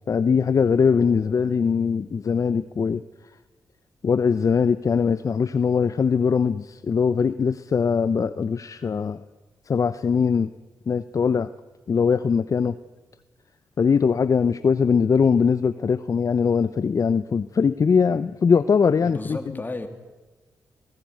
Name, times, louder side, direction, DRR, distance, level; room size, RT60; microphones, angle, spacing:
voice 1, 0.1-3.0 4.0-9.2 9.7-10.5 10.9-11.5 11.9-12.7 13.8-19.4, left 6 dB, 50° left, 14 dB, 0.7 m, -21 dB
voice 2, 0.9-1.5 19.0-19.9, left 2 dB, 25° left, 7 dB, 3.0 m, -35 dB
21.0 x 15.0 x 9.5 m, 1.3 s
supercardioid pair, 50°, 7 cm